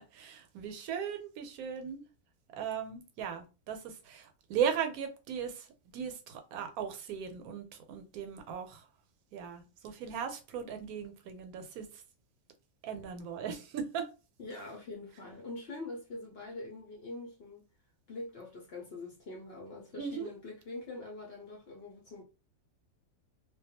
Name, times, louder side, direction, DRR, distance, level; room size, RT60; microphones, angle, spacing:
voice 1, 0.1-2.0 2.6-5.7 5.9-8.9 9.3-12.0 12.8-14.1 19.9-20.3, right 7 dB, 80° right, 1.0 m, -37 dB
voice 2, 14.4-17.6 18.1-22.2, left 2 dB, 55° left, 0.7 m, -44 dB
2.4 x 2.2 x 2.7 m
omnidirectional pair, 1.5 m